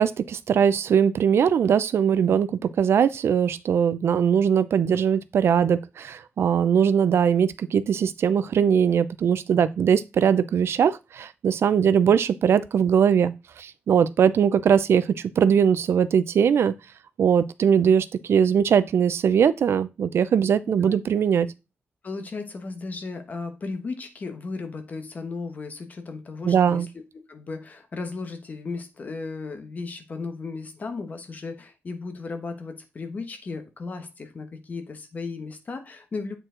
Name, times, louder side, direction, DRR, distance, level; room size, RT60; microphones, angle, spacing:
voice 1, 0.0-15.1 15.4-16.7 17.2-21.5 26.4-26.9, right 7 dB, 75° right, 0.5 m, -21 dB
voice 2, 22.0-26.9 27.3-36.4, left 4 dB, 40° left, 1.1 m, -35 dB
7.8 x 4.5 x 3.8 m
wide cardioid pair, 180°, 4 cm